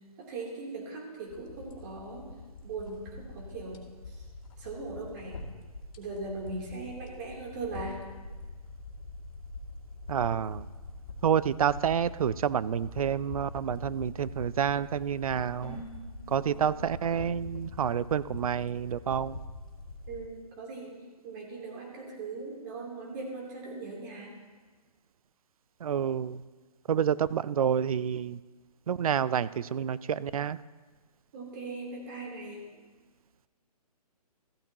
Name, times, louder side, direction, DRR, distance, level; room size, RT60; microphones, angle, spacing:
voice 1, 0.2-2.3 2.6-3.8 4.1-4.3 4.6-5.4 6.0-8.0 16.4-16.8 20.1-20.9 21.2-24.3 31.3-32.6, right 3 dB, 30° right, -2 dB, 3.1 m, -39 dB
sound 1, 1.3-20.3, left 2 dB, 55° left, 2.5 m, -44 dB
voice 2, 10.1-10.7 11.2-15.8 16.3-19.4 25.8-26.4 26.9-28.4 28.9-30.6, right 8 dB, 60° right, 18 dB, 0.5 m, -28 dB
Keyboard (musical), 15.6-19.2, equal, 10° left, 4.3 m, -51 dB
14.5 x 13.5 x 2.9 m, 1.3 s
hypercardioid pair, 160°, 20 cm